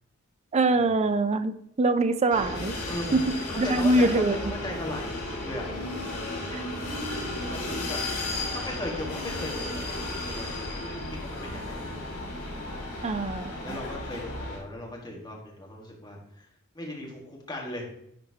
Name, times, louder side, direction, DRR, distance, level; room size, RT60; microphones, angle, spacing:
voice 1, 0.5-2.7 3.1-3.2 3.6-4.4 6.5-6.6 13.0-13.7, right 2 dB, 30° right, 11 dB, 0.4 m, -24 dB
sound 1, 2.3-14.6, left 2 dB, 75° left, 2.4 m, -34 dB
voice 2, 2.9-5.7 7.1-8.0 8.5-11.9 13.6-17.9, left 1 dB, 20° left, -2 dB, 1.6 m, -38 dB
10.5 x 4.4 x 2.8 m, 0.75 s
head